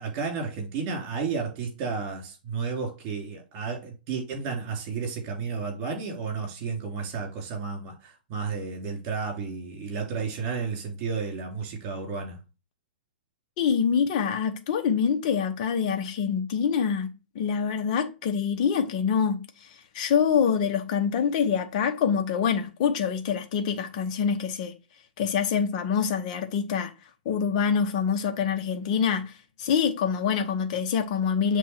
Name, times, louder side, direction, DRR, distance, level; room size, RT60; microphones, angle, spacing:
voice 1, 0.0-12.4, right 5 dB, 35° right, 3.2 m, -32 dB
voice 2, 13.6-19.5 19.9-24.7 25.2-26.9 27.2-29.3 29.6-31.6, left 7 dB, 45° left, 0.9 m, -25 dB
7.3 x 3.6 x 4.4 m
hypercardioid pair, 135°, 5 cm